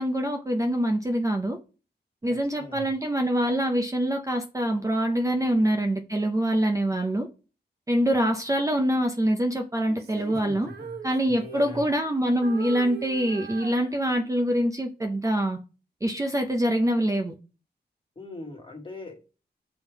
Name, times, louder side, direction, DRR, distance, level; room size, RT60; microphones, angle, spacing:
voice 1, 0.0-1.6 2.2-7.3 7.9-10.7 11.0-15.6 16.0-17.3, right 1 dB, 20° right, 0.5 m, -25 dB
voice 2, 2.3-2.9 10.3-11.0 11.2-11.8 18.1-19.3, left 2 dB, 30° left, 1.4 m, -41 dB
Female singing, 9.9-12.1 12.4-14.5, right 7 dB, 70° right, 0.8 m, -41 dB
7.2 x 3.5 x 4.5 m
wide cardioid pair, 145°, 18 cm